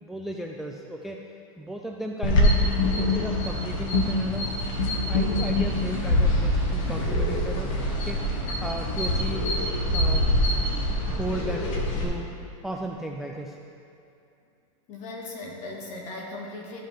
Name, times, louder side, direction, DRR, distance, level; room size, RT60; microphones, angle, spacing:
voice 1, 0.0-1.2 1.6-2.6 3.0-4.5 5.0-7.7 8.0-10.4 10.7-12.3 12.6-13.6, right 1 dB, ahead, 1 dB, 0.3 m, -35 dB
sound 1, 2.2-12.0, left 1 dB, 70° left, 1.7 m, -24 dB
voice 2, 14.9-16.8, left 2 dB, 40° left, -1 dB, 1.7 m, -38 dB
13.5 x 5.5 x 3.4 m, 2.6 s
supercardioid pair, 140°, 18 cm